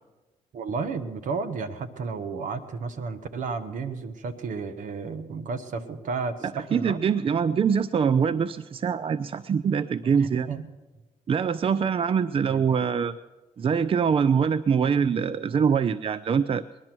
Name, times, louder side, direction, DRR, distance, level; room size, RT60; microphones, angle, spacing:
voice 1, 0.5-7.0 10.0-10.6 12.5-12.6, right 4 dB, 70° right, 10 dB, 1.3 m, -32 dB
voice 2, 6.7-10.5 11.3-13.2 13.6-16.6, right 6 dB, 40° right, 16 dB, 0.5 m, -24 dB
20.5 x 11.0 x 6.1 m, 1.2 s
supercardioid pair, 60°, 14 cm